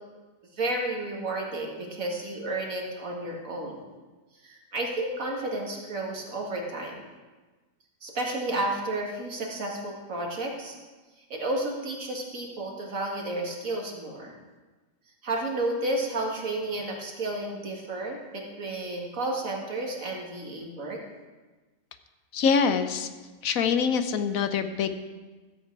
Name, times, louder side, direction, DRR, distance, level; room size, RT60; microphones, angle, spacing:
voice 1, 0.5-3.8 4.4-7.1 8.0-10.8 11.3-14.4 15.2-21.0, right 2 dB, 75° right, -1 dB, 2.3 m, -32 dB
voice 2, 22.3-23.1 23.4-25.0, left 6 dB, 85° left, 9 dB, 1.2 m, -25 dB
13.5 x 8.2 x 4.7 m, 1.3 s
omnidirectional pair, 1.4 m